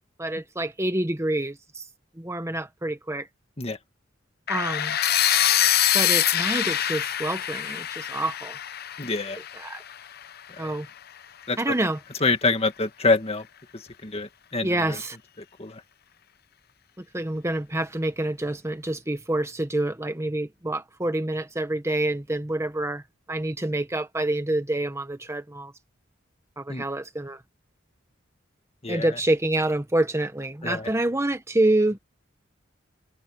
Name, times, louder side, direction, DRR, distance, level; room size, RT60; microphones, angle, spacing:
voice 1, 0.2-1.8 2.2-3.3 4.5-5.0 5.9-8.6 9.6-9.8 10.6-10.9 11.6-12.0 14.6-15.2 17.1-23.0 23.3-25.7 26.6-27.4 28.9-32.0, right 1 dB, 15° right, 1.1 m, -27 dB
sound 1, 4.5-10.4, left 11 dB, 55° left, 0.8 m, -24 dB
voice 2, 9.0-9.4 10.6-10.7 11.5-11.8 12.2-13.5 13.7-15.0 15.6-15.8 26.7-26.8 28.8-29.2 30.6-30.9, left 3 dB, 30° left, 1.9 m, -26 dB
head